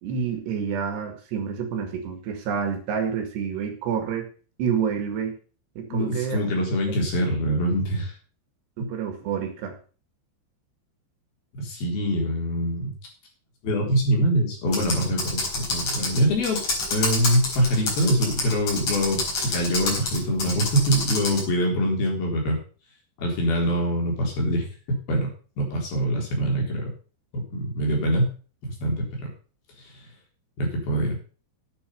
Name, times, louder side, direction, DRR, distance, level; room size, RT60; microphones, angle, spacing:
voice 1, 0.0-4.3 4.6-5.4 5.8-6.4 8.8-9.8, right 7 dB, 70° right, 6 dB, 3.9 m, -28 dB
voice 2, 5.9-8.1 8.8-8.9 11.5-12.9 13.6-16.6 16.9-22.6 23.2-25.3 25.6-26.9 27.3-28.3 28.6-29.2 29.8-29.9 30.6-31.2, equal, 55° left, 0 dB, 5.6 m, -24 dB
Computer keyboard, 14.7-21.5, left 2 dB, 40° left, 5.5 m, -28 dB
10.0 x 8.5 x 6.8 m, 0.39 s
omnidirectional pair, 5.3 m